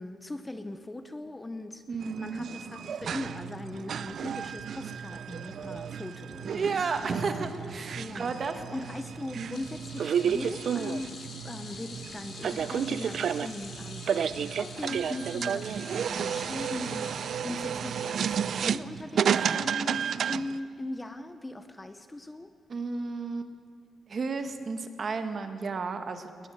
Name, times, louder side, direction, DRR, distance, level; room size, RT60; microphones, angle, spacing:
voice 1, 0.0-1.8 2.2-6.8 7.9-22.5, left 2 dB, 10° left, 9 dB, 0.7 m, -39 dB
voice 2, 1.9-2.5 6.5-8.5 9.4-9.6 22.7-23.5 24.1-26.3, right 4 dB, 35° right, 7 dB, 1.5 m, -33 dB
sound 1, 2.0-20.6, right 8 dB, 55° right, 0.5 m, -32 dB
sound 2, 3.0-19.0, right 7 dB, 75° right, 1.1 m, -45 dB
sound 3, 9.5-17.9 18.3-18.5 19.7-19.8, left 4 dB, 50° left, 3.6 m, -47 dB
21.0 x 20.0 x 8.1 m, 2.3 s
wide cardioid pair, 170°, 0 cm